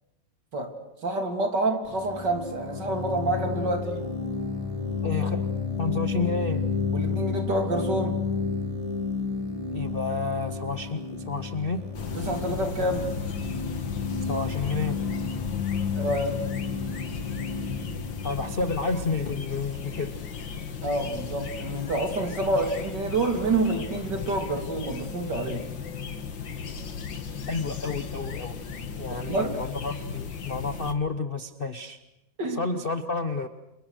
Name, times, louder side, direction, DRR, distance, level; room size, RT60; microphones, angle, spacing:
voice 1, 0.5-4.1 6.9-8.2 12.2-13.1 15.9-16.5 20.8-25.7 29.1-29.6 32.4-32.6, right 2 dB, 55° right, 5 dB, 3.7 m, -28 dB
sound 1, 1.9-19.5, left 5 dB, 15° left, 2.8 m, -31 dB
voice 2, 5.0-5.4 5.8-6.6 9.7-11.8 14.3-15.0 18.2-20.1 27.5-28.6 29.0-32.0 32.5-33.5, left 3 dB, 35° left, 8 dB, 0.9 m, -30 dB
sound 2, 11.9-30.9, left 6 dB, 65° left, 2.5 m, -36 dB
29.5 x 27.5 x 6.5 m, 0.90 s
omnidirectional pair, 2.2 m